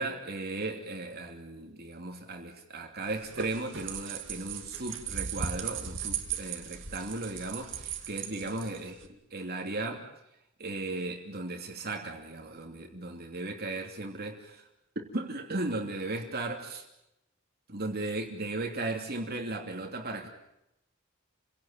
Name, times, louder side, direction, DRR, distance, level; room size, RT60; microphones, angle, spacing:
voice 1, 0.0-8.9 9.3-10.0 10.6-14.6 14.9-16.8 17.7-20.3, right 2 dB, 50° right, 2 dB, 2.9 m, -36 dB
sound 1, 3.0-9.1, right 7 dB, 65° right, 2.5 m, -37 dB
30.0 x 17.5 x 9.0 m, 0.87 s
head